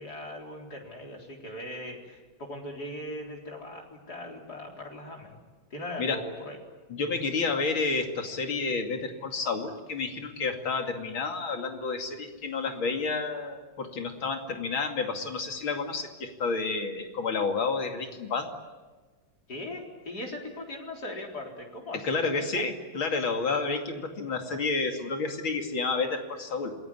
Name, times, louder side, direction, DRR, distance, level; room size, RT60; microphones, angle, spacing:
voice 1, 0.0-5.4 5.7-6.6 19.5-22.2, left 1 dB, 50° left, 0 dB, 4.6 m, -39 dB
voice 2, 6.9-18.5 22.0-26.8, left 4 dB, 85° left, 4 dB, 3.3 m, -30 dB
27.5 x 21.0 x 9.8 m, 1.3 s
omnidirectional pair, 2.2 m